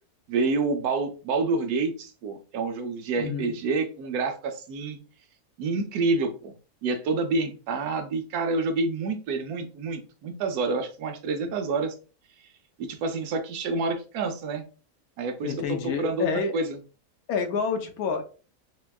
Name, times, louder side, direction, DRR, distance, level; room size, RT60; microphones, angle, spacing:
voice 1, 0.3-5.0 5.6-6.5 6.8-11.9 12.8-14.6 15.2-16.3 16.5-16.8, right 3 dB, 80° right, 6 dB, 1.1 m, -28 dB
voice 2, 3.2-3.6 15.4-16.5 17.3-18.2, left 5 dB, 75° left, 5 dB, 1.1 m, -28 dB
4.3 x 2.2 x 2.2 m, 0.35 s
omnidirectional pair, 1.6 m